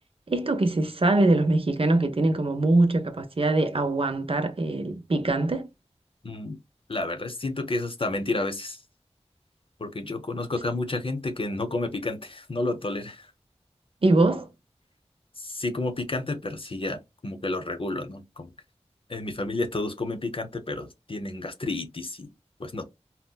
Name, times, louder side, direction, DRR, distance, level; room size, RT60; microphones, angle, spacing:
voice 1, 0.3-5.7 14.0-14.5, right 2 dB, 55° right, 0.6 m, -23 dB
voice 2, 6.2-6.6 6.9-8.8 9.8-13.3 15.4-18.5 19.1-22.3 22.6-22.8, left 2 dB, 55° left, 0.8 m, -31 dB
4.2 x 2.0 x 2.2 m
wide cardioid pair, 45°, 11 cm